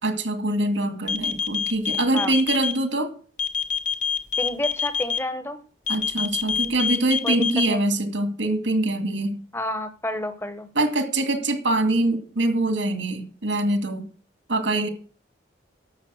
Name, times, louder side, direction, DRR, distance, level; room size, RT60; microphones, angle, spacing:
voice 1, 0.0-3.1 5.9-9.4 10.8-14.1 14.5-14.9, right 2 dB, 85° right, 7 dB, 2.1 m, -24 dB
sound 1, 1.1-2.7 3.4-5.2 5.9-7.7, left 7 dB, 45° left, 1.1 m, -25 dB
voice 2, 4.4-5.6 7.2-7.4 7.7-7.9 9.5-10.7, left 1 dB, 15° left, 10 dB, 1.1 m, -29 dB
11.0 x 7.3 x 6.4 m, 0.41 s
head